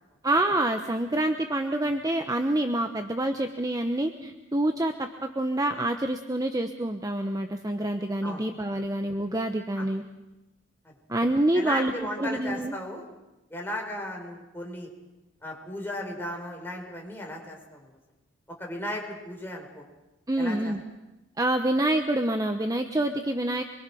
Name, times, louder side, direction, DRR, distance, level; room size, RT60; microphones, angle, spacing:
voice 1, 0.2-10.0 11.1-11.9 12.2-12.7 20.3-20.8 21.4-23.6, right 1 dB, 20° right, 6 dB, 1.0 m, -27 dB
voice 2, 11.5-13.0 13.5-14.9 15.4-17.9 18.6-19.8 20.4-20.7, left 1 dB, 10° left, 0 dB, 4.9 m, -36 dB
25.5 x 23.0 x 6.2 m, 1.0 s
head